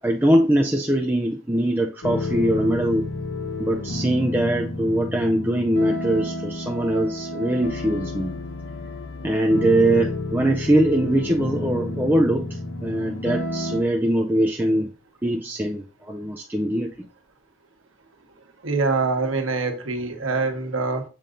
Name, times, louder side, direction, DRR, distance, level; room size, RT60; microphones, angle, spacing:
voice 1, 0.0-3.1 3.6-8.3 9.2-14.9 15.2-16.9, right 1 dB, 10° right, 1 dB, 0.4 m, -22 dB
sound 1, 2.0-13.8, left 2 dB, 75° left, 0.7 m, -30 dB
voice 2, 18.6-21.0, right 3 dB, 90° right, 4 dB, 1.3 m, -24 dB
7.4 x 2.6 x 5.0 m, 0.34 s
head